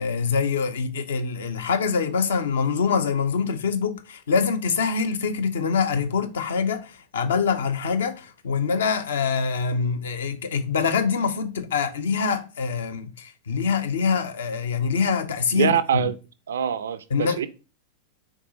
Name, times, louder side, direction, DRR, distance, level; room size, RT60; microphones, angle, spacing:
voice 1, 0.0-16.1 17.1-17.4, left 5 dB, 65° left, 0.6 m, -25 dB
voice 2, 15.5-16.1 16.5-17.5, right 9 dB, 65° right, 0.3 m, -24 dB
4.6 x 3.7 x 2.8 m
figure-of-eight pair, 90°, 0 cm